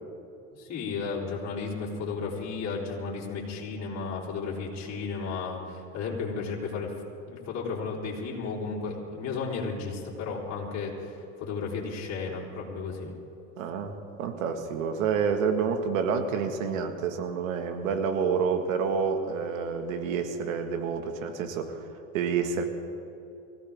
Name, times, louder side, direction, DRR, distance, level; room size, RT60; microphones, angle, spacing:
voice 1, 0.6-6.9 7.3-13.1, left 4 dB, 40° left, -3 dB, 3.9 m, -34 dB
voice 2, 13.6-21.8 22.1-22.6, right 6 dB, 85° right, 6 dB, 1.9 m, -28 dB
24.0 x 16.0 x 3.6 m, 2.8 s
supercardioid pair, 105°, 39 cm